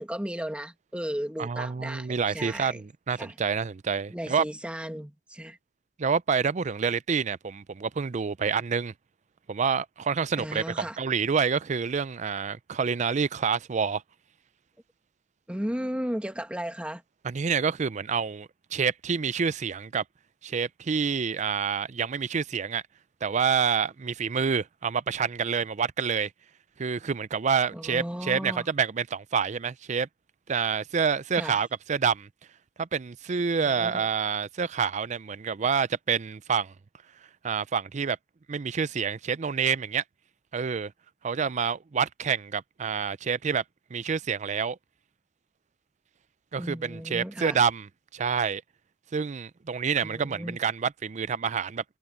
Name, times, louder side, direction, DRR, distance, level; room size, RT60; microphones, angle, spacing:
voice 1, 0.0-2.8 3.2-3.3 4.1-5.6 10.4-11.0 15.5-17.0 27.7-28.7 31.3-31.6 33.6-34.1 46.6-47.6 50.0-50.6, equal, 5° right, 1.9 m, -35 dB
voice 2, 1.4-4.5 6.0-8.9 9.5-14.0 17.2-20.0 20.4-22.8 23.2-26.3 26.8-30.1 30.5-32.3 32.8-36.7 37.4-38.2 38.5-40.0 40.5-40.9 41.2-43.6 43.9-44.8 46.5-48.6 49.1-51.8, right 6 dB, 40° right, 0.5 m, -28 dB
head